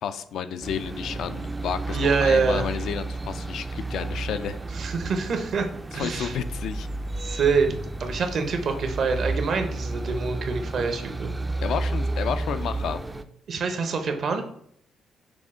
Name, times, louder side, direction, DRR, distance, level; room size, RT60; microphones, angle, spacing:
voice 1, 0.0-4.6 5.9-6.9 11.6-13.0, left 8 dB, 75° left, 11 dB, 0.3 m, -31 dB
sound 1, 0.6-13.2, right 2 dB, 15° right, 0.3 m, -32 dB
voice 2, 1.9-2.7 4.7-5.7 5.9-6.4 7.2-11.3 13.5-14.4, right 4 dB, 60° right, 6 dB, 0.7 m, -25 dB
6.0 x 2.1 x 3.7 m, 0.65 s
cardioid pair, 90°, 0 cm